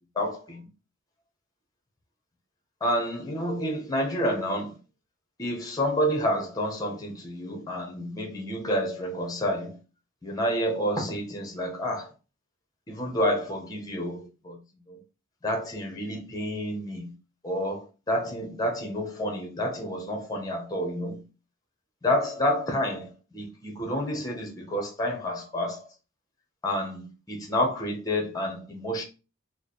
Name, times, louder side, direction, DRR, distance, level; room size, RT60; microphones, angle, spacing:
voice 1, 0.2-0.6 2.8-4.7 5.4-9.8 10.2-12.1 12.9-14.6 14.9-15.0 15.4-17.1 17.4-21.2 22.0-25.8 26.6-29.0, equal, 20° left, 0.8 m, -29 dB
3.2 x 2.1 x 4.1 m
head